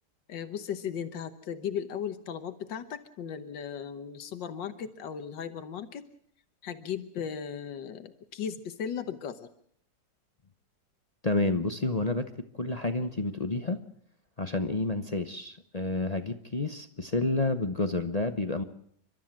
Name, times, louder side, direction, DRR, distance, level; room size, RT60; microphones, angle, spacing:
voice 1, 0.3-6.1 6.6-9.5, left 8 dB, 90° left, 10 dB, 1.8 m, -36 dB
voice 2, 11.2-12.3 12.6-13.8 14.4-18.6, left 2 dB, 30° left, 8 dB, 0.8 m, -29 dB
30.0 x 13.0 x 7.5 m, 0.65 s
omnidirectional pair, 1.9 m